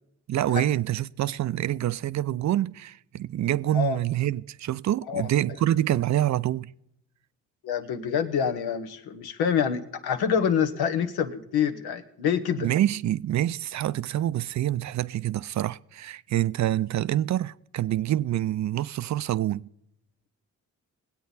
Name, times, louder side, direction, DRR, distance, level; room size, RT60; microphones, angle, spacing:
voice 1, 0.3-6.7 12.6-19.7, right 13 dB, 50° right, 0.4 m, -26 dB
voice 2, 7.6-12.7, left 7 dB, 80° left, 1.0 m, -26 dB
19.5 x 8.4 x 4.0 m
supercardioid pair, 45°, 37 cm